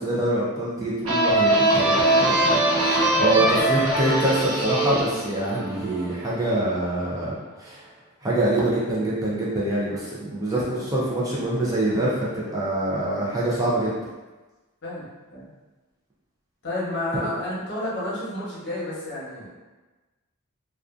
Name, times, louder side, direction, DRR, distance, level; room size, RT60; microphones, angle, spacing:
voice 1, 0.0-7.8 8.2-13.9, right 1 dB, 15° right, -7 dB, 0.4 m, -25 dB
sound 1, 1.0-6.5, right 1 dB, 65° right, 0.6 m, -22 dB
voice 2, 3.1-3.9 10.4-11.0 14.8-15.1 15.3-15.5 16.6-19.5, left 1 dB, 55° left, -8 dB, 0.9 m, -31 dB
2.5 x 2.3 x 2.3 m, 1.2 s
head